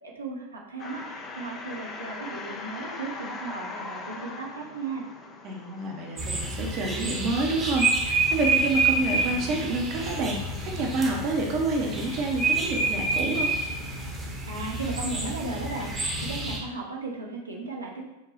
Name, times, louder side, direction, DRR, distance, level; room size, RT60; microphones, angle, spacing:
voice 1, 0.0-5.1 14.5-18.0, right 3 dB, 80° right, -2 dB, 0.8 m, -36 dB
sound 1, 0.8-12.9, left 3 dB, 25° left, 0.5 m, -43 dB
voice 2, 5.4-13.5, right 2 dB, 40° right, 1 dB, 0.7 m, -28 dB
sound 2, 6.2-16.6, right 3 dB, 15° right, 0.9 m, -28 dB
5.6 x 2.3 x 4.1 m, 1.0 s
figure-of-eight pair, 90°, 0 cm